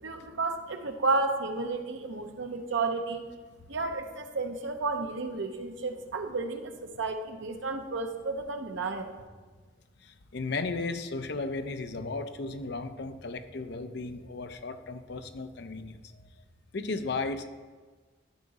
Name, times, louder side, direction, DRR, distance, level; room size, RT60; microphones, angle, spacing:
voice 1, 0.0-3.2 3.7-9.1, right 3 dB, 75° right, 6 dB, 0.8 m, -32 dB
voice 2, 10.0-16.0 16.7-17.4, left 3 dB, 60° left, 8 dB, 0.6 m, -35 dB
13.0 x 4.9 x 4.1 m, 1.4 s
head